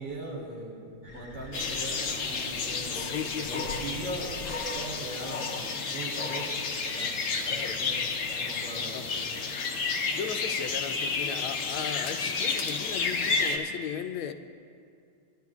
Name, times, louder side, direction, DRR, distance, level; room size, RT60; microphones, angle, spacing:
voice 1, 0.0-4.5 4.7-9.3, right 1 dB, 60° right, -5 dB, 3.2 m, -40 dB
sound 1, 1.0-4.7, left 3 dB, 25° left, 1.7 m, -48 dB
sound 2, 1.5-13.6, left 4 dB, 55° left, 0.9 m, -31 dB
voice 2, 2.9-3.7 7.5-7.8 8.9-9.0 10.1-14.3, left 8 dB, 80° left, 8 dB, 1.4 m, -36 dB
20.0 x 11.5 x 2.4 m, 2.4 s
omnidirectional pair, 2.3 m